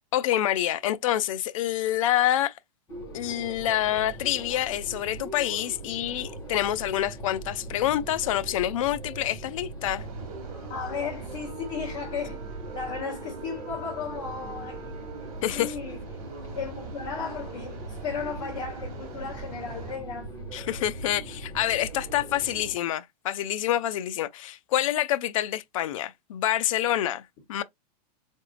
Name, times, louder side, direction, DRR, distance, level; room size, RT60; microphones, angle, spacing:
voice 1, 0.1-2.5 3.1-10.0 15.4-15.7 20.5-27.2 27.5-27.6, left 12 dB, 55° left, 0.5 m, -27 dB
sound 1, 2.9-22.7, right 2 dB, 15° left, 2.8 m, -40 dB
sound 2, 10.0-20.0, right 5 dB, 60° right, 1.6 m, -43 dB
voice 2, 10.7-12.4 12.7-14.9 15.5-16.0 16.5-20.3, left 5 dB, 35° left, 1.6 m, -35 dB
4.8 x 3.6 x 2.4 m
supercardioid pair, 170°, 21 cm